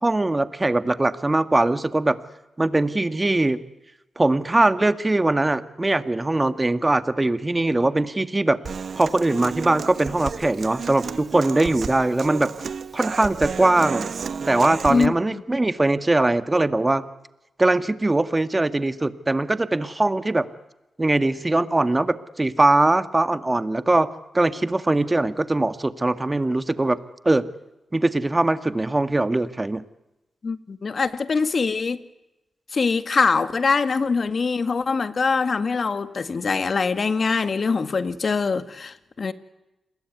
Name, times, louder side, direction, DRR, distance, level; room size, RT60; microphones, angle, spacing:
voice 1, 0.0-2.2 2.6-3.6 4.2-8.6 9.0-12.5 12.9-14.1 14.5-17.1 17.6-20.5 21.0-24.1 24.3-27.0 27.2-27.4 27.9-29.8, right 2 dB, 25° right, 2.0 m, -21 dB
Human voice / Acoustic guitar, 8.6-15.1, right 6 dB, 65° right, 1.1 m, -32 dB
voice 2, 30.4-32.0 32.7-39.3, left 4 dB, 55° left, 2.0 m, -23 dB
28.5 x 22.0 x 9.7 m
supercardioid pair, 45°, 0 cm